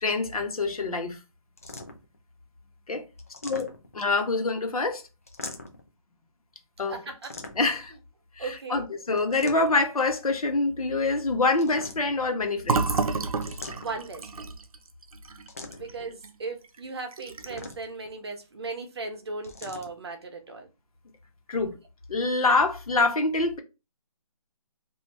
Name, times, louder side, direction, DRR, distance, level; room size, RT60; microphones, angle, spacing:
voice 1, 0.0-1.2 2.9-3.0 3.4-3.7 3.9-5.0 6.8-7.0 7.6-7.9 8.4-12.9 21.5-21.7 22.1-23.6, left 3 dB, 75° left, 1.2 m, -25 dB
sound 1, 1.6-2.2 3.2-4.1 5.3-5.9 7.2-7.9 9.2-9.9 11.5-12.3 13.4-14.2 15.5-16.0 17.4-18.1 19.4-19.9, left 2 dB, 25° left, 0.4 m, -42 dB
voice 2, 6.9-7.3 8.4-8.8 13.8-14.2 15.8-20.7, right 3 dB, 45° right, 0.9 m, -37 dB
Fill (with liquid), 12.6-16.3 16.6-16.8 17.1-17.7, right 4 dB, 70° right, 0.6 m, -30 dB
2.7 x 2.6 x 3.2 m
hypercardioid pair, 170°, 19 cm